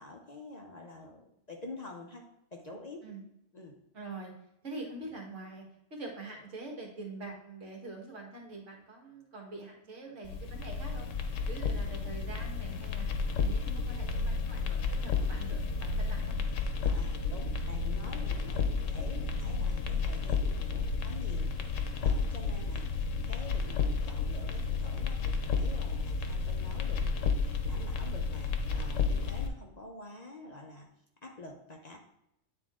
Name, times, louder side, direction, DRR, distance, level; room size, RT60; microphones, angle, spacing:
voice 1, 0.0-2.2 2.5-3.0 3.5-3.8 16.8-30.9 31.2-32.0, left 2 dB, 40° left, 1 dB, 0.8 m, -47 dB
voice 2, 3.9-4.3 4.6-5.6 5.9-13.1 13.3-16.4, right 2 dB, 70° right, 0 dB, 1.9 m, -44 dB
sound 1, 10.2-29.5, left 4 dB, 90° left, 1.1 m, -32 dB
9.4 x 3.8 x 3.7 m, 0.81 s
omnidirectional pair, 1.3 m